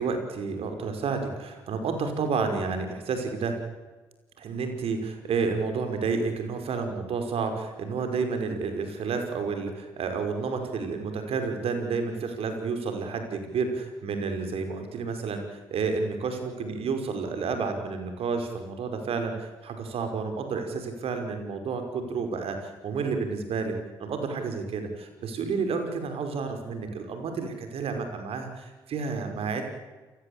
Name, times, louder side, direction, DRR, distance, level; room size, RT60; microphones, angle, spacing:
voice 1, 0.0-3.6 4.4-29.6, right 4 dB, 55° right, 6 dB, 5.4 m, -30 dB
29.0 x 17.0 x 8.8 m, 1.2 s
hypercardioid pair, 45°, 12 cm